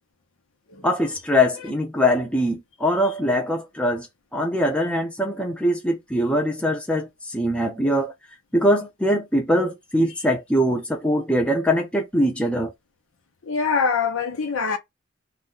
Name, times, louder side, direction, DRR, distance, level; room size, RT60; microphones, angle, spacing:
voice 1, 0.8-4.1 4.3-8.1 8.5-12.7, equal, 5° left, 0.5 m, -22 dB
voice 2, 13.4-14.8, left 5 dB, 80° left, 0.7 m, -24 dB
2.3 x 2.2 x 3.7 m
head